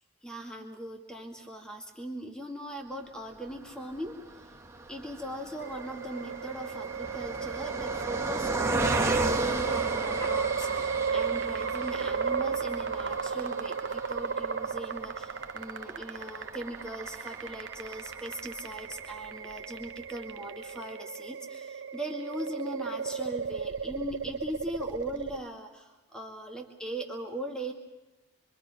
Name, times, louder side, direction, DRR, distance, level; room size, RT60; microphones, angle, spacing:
voice 1, 0.2-4.4 4.9-27.7, right 1 dB, 5° left, 1 dB, 2.1 m, -40 dB
Car passing by, 3.5-19.0 19.5-19.6 19.8-20.0, right 2 dB, 15° right, 1.3 m, -36 dB
sound 1, 5.6-25.4, right 6 dB, 70° right, 0.8 m, -34 dB
sound 2, 7.0-13.2, left 1 dB, 20° left, 1.2 m, -48 dB
26.5 x 24.5 x 5.1 m, 1.1 s
head